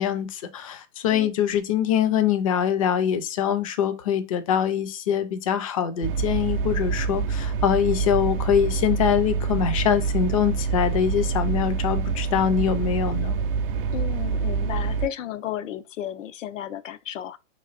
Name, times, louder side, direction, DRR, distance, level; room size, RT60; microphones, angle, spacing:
voice 1, 0.0-13.4, left 9 dB, 30° left, 0.4 m, -24 dB
sound 1, 6.0-15.1, right 5 dB, 45° right, 0.5 m, -26 dB
voice 2, 13.9-17.4, left 11 dB, 90° left, 0.6 m, -33 dB
3.0 x 2.5 x 3.9 m
hypercardioid pair, 150°, 37 cm